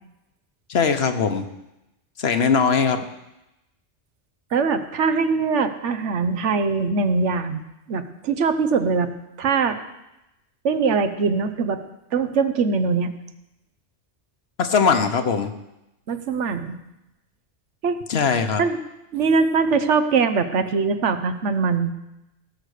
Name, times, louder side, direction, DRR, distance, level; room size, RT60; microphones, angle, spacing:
voice 1, 0.7-1.4 2.2-3.0 14.6-15.5 18.1-18.6, left 5 dB, 65° left, 8 dB, 1.2 m, -20 dB
voice 2, 4.5-7.6 7.9-9.1 9.4-9.8 10.6-11.8 12.1-13.1 16.1-16.8 17.8-18.0 18.6-18.8 19.1-21.9, right 4 dB, 85° right, 10 dB, 1.2 m, -22 dB
17.0 x 6.6 x 6.5 m, 0.91 s
omnidirectional pair, 1.2 m